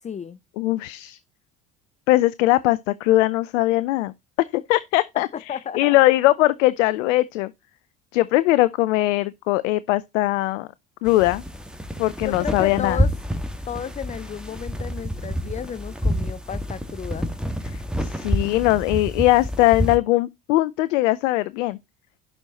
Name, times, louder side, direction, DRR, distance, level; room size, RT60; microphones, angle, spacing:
voice 1, 0.0-0.4 5.1-6.0 12.2-13.1 13.7-17.3, left 8 dB, 20° left, 0.5 m, -33 dB
voice 2, 0.6-1.2 2.1-4.1 4.5-7.5 8.1-10.7 11.0-11.4 12.0-13.0 17.7-21.8, left 17 dB, 70° left, 0.6 m, -20 dB
sound 1, 11.1-20.0, equal, ahead, 1.7 m, -28 dB
11.0 x 6.3 x 3.9 m
hypercardioid pair, 65°, 39 cm